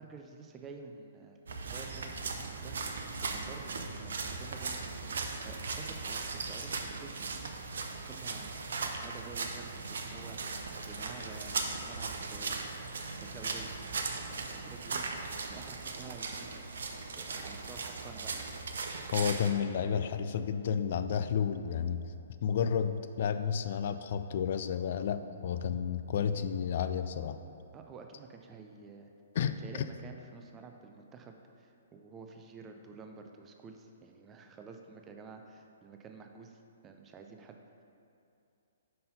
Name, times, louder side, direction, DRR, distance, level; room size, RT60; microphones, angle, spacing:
voice 1, 0.0-1.4 1.7-4.9 5.4-7.6 8.0-8.6 8.8-13.7 14.3-15.2 15.5-16.6 17.1-18.4 27.7-29.1 29.6-37.6, right 4 dB, 15° right, 4 dB, 0.5 m, -50 dB
sound 1, 1.5-19.5, right 4 dB, 60° right, 0.6 m, -38 dB
sound 2, 10.9-16.1, left 1 dB, 70° left, 1.7 m, -56 dB
voice 2, 19.1-22.0 22.4-27.4 29.4-29.6, left 7 dB, 45° left, 10 dB, 0.3 m, -31 dB
5.5 x 5.5 x 5.3 m, 2.6 s
figure-of-eight pair, 120°, 0 cm